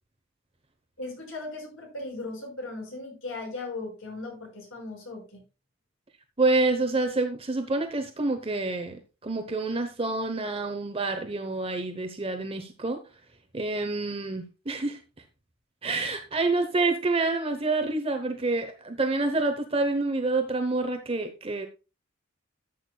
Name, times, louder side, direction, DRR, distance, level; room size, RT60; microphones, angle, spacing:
voice 1, 1.0-5.4, left 2 dB, 80° left, 0 dB, 5.6 m, -37 dB
voice 2, 6.4-13.0 13.5-15.0 15.8-21.7, right 3 dB, 25° right, 6 dB, 0.9 m, -27 dB
13.5 x 8.0 x 2.3 m, 0.30 s
head